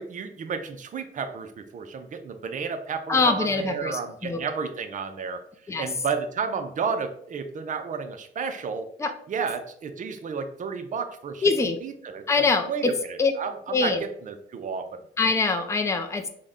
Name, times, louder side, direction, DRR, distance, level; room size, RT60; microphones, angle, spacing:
voice 1, 0.0-5.4 5.8-8.9 9.3-11.5 11.8-15.0, right 5 dB, 40° right, 8 dB, 0.5 m, -32 dB
voice 2, 3.1-4.4 5.7-5.9 9.0-9.1 11.4-11.8 12.3-12.9 13.2-13.3 13.7-14.0 15.2-16.3, left 4 dB, 15° left, 6 dB, 0.4 m, -24 dB
3.7 x 2.1 x 3.5 m, 0.66 s
cardioid pair, 90°, 20 cm